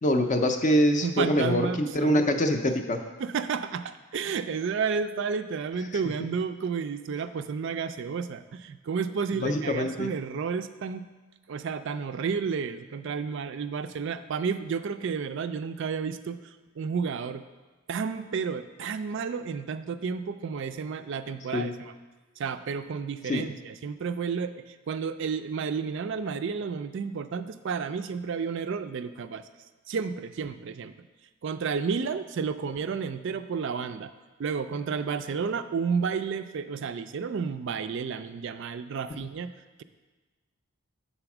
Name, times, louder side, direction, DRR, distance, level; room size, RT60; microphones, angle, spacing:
voice 1, 0.0-3.0 9.4-10.1 21.5-21.7 23.3-23.4, equal, 35° left, 5 dB, 0.4 m, -24 dB
voice 2, 1.0-2.3 3.2-11.1 11.5-17.4 17.9-21.9 22.4-29.5 29.9-30.9 31.4-34.1 34.4-39.5, right 5 dB, 55° right, 11 dB, 0.3 m, -31 dB
7.8 x 4.1 x 5.9 m, 1.3 s
head